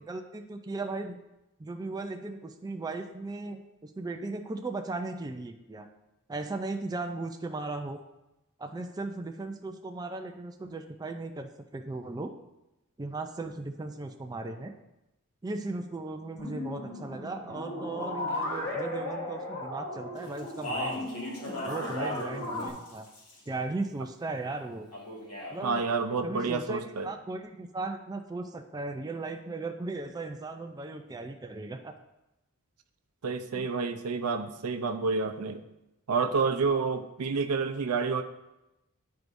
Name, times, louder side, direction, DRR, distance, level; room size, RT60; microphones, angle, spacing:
voice 1, 0.1-1.2 1.6-5.9 6.3-8.0 8.6-12.3 13.0-14.7 15.4-21.1 21.6-23.1 23.5-24.9 25.5-25.8 26.2-31.9, right 2 dB, 15° right, 5 dB, 0.4 m, -37 dB
sound 1, 16.4-22.7, left 1 dB, 25° left, 1.3 m, -36 dB
Speech, 20.4-22.3 22.6-23.5 24.9-25.6, equal, 80° left, 2.1 m, -36 dB
voice 2, 25.6-27.1 33.2-35.6 36.1-38.2, right 4 dB, 85° right, 7 dB, 0.6 m, -29 dB
11.0 x 4.6 x 2.6 m, 0.94 s
head